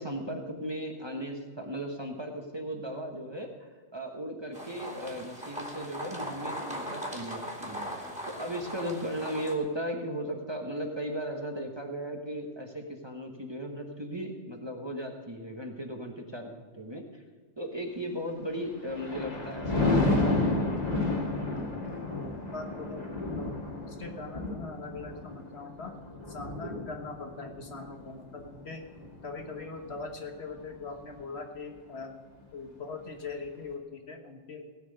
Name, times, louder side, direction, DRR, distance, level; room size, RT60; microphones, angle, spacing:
voice 1, 0.0-17.2 17.6-20.4, equal, 25° right, 2 dB, 1.3 m, -37 dB
sound 1, 4.5-9.5, equal, 5° right, 2.3 m, -39 dB
Thunder, 18.5-30.0 30.5-30.8, left 2 dB, 35° left, 1.9 m, -31 dB
voice 2, 22.5-23.5 23.8-26.0 26.3-28.9 29.2-32.1 32.5-34.7, left 4 dB, 60° left, 4 dB, 1.6 m, -41 dB
17.0 x 6.1 x 7.9 m, 1.5 s
omnidirectional pair, 1.2 m